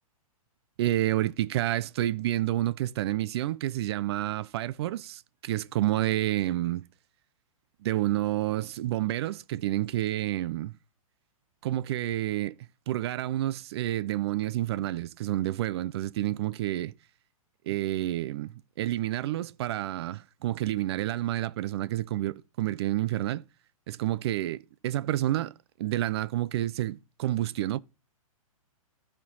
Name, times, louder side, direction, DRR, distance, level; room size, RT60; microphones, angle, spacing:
voice 1, 0.8-6.8 7.8-10.7 11.6-12.5 12.9-16.9 17.7-23.4 23.9-27.8, right 14 dB, 45° right, 0.4 m, -29 dB
12.5 x 4.4 x 5.5 m
hypercardioid pair, 140°, 18 cm